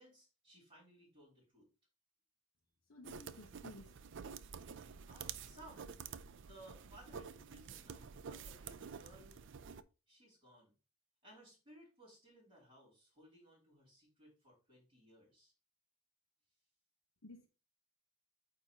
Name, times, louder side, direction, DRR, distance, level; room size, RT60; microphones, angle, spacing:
voice 1, 0.0-1.7 5.1-6.0 6.4-9.4 10.1-10.7 11.2-15.5, right 1 dB, 25° right, 3.4 m, -61 dB
voice 2, 2.8-4.3 17.2-17.5, left 2 dB, 60° left, 0.9 m, -56 dB
sound 1, 3.0-9.8, right 6 dB, 55° right, 0.4 m, -49 dB
8.6 x 2.9 x 5.2 m
head